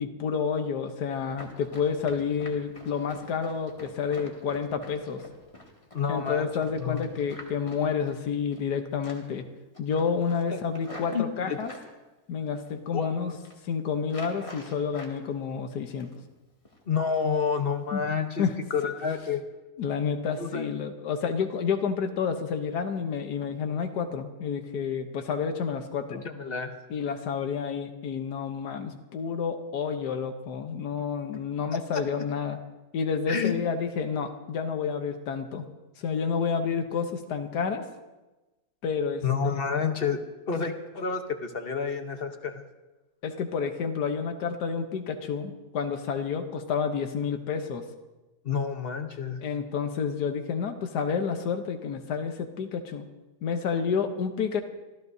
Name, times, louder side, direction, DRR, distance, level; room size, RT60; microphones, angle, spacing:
voice 1, 0.0-5.2 6.1-9.4 9.8-11.7 12.3-13.3 13.6-16.1 17.9-18.0 18.4-18.6 19.8-26.2 26.9-32.6 32.9-35.6 36.0-37.8 38.8-39.6 43.2-47.9 49.4-53.1 53.4-54.6, left 6 dB, 85° left, 6 dB, 1.5 m, -29 dB
Run, 1.3-8.7 9.0-9.4 9.7-11.9 12.5-13.0 13.3-13.6 14.0-15.2 15.5-16.3 16.6-16.8 17.2-17.6 17.9-18.0 18.5-18.6 19.0-19.1, left 1 dB, 20° left, 2.2 m, -47 dB
voice 2, 5.9-6.5 6.8-7.0 10.5-10.6 11.1-11.6 12.9-13.4 16.9-19.4 20.4-20.7 26.1-26.7 31.9-32.0 33.3-33.5 39.2-40.2 40.5-42.6 48.4-49.4, left 6 dB, 40° left, 6 dB, 1.1 m, -29 dB
26.0 x 14.5 x 2.7 m, 1.1 s
omnidirectional pair, 1.7 m